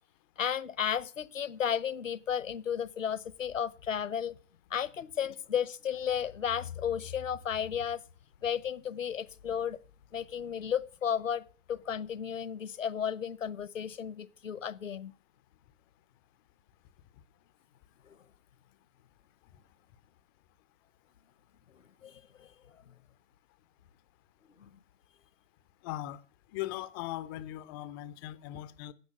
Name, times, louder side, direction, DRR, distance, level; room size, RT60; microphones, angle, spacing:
voice 1, 0.4-4.4 4.7-8.0 8.4-9.8 10.1-15.1 18.0-18.2 21.7-22.5 22.9-23.0 24.6-24.7, left 8 dB, 80° left, 1.0 m, -34 dB
voice 2, 25.8-26.2 26.5-28.9, left 14 dB, 20° left, 0.5 m, -39 dB
12.0 x 8.2 x 7.7 m
figure-of-eight pair, 125°, 38 cm